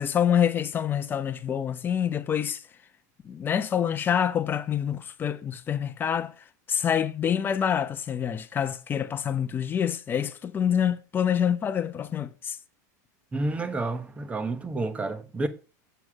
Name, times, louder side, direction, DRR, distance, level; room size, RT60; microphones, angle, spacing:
voice 1, 0.0-2.6 3.2-6.3 6.7-12.6, left 8 dB, 20° left, 0.8 m, -26 dB
voice 2, 13.3-15.5, right 2 dB, 15° right, 1.1 m, -30 dB
8.0 x 7.0 x 3.6 m
supercardioid pair, 145°, 10 cm